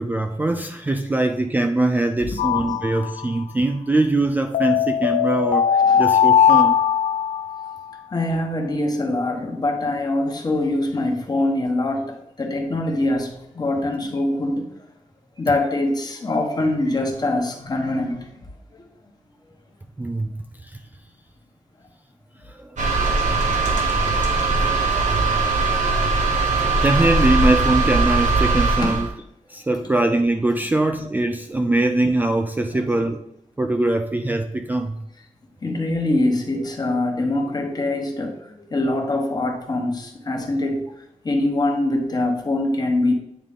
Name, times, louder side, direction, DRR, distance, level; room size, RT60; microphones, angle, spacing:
voice 1, 0.0-5.7 6.0-6.8 20.0-20.4 20.6-20.8 22.5-22.7 23.7-24.4 26.8-29.1 29.5-33.2 33.6-35.0, right 2 dB, 15° right, 5 dB, 0.3 m, -22 dB
sound 1, 2.4-3.4 4.5-7.8, left 8 dB, 80° left, 0.4 m, -19 dB
voice 2, 8.1-14.7 15.4-18.3 18.7-18.8 28.8-29.1 32.7-32.9 35.6-40.8 41.2-43.1, left 2 dB, 30° left, 2 dB, 1.1 m, -23 dB
sound 2, 22.8-29.1, right 3 dB, 75° right, 1.2 m, -20 dB
9.0 x 3.7 x 3.5 m, 0.79 s
wide cardioid pair, 170°, 13 cm